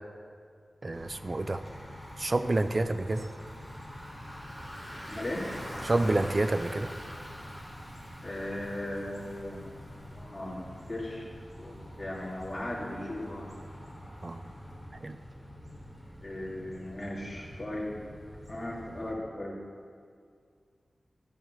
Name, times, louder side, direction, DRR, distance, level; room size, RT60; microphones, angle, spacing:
voice 1, 0.8-1.6 2.2-3.3 5.8-6.9 14.2-14.5 14.9-15.2, right 2 dB, 40° right, 10 dB, 0.5 m, -28 dB
Bicycle, 0.9-19.1, equal, 15° right, 2.5 m, -45 dB
voice 2, 5.1-5.5 8.2-9.7 10.1-11.3 11.6-13.5 16.2-18.0 18.5-19.6, left 1 dB, 20° left, -5 dB, 2.6 m, -37 dB
14.0 x 5.4 x 7.4 m, 2.2 s
wide cardioid pair, 100°, 0 cm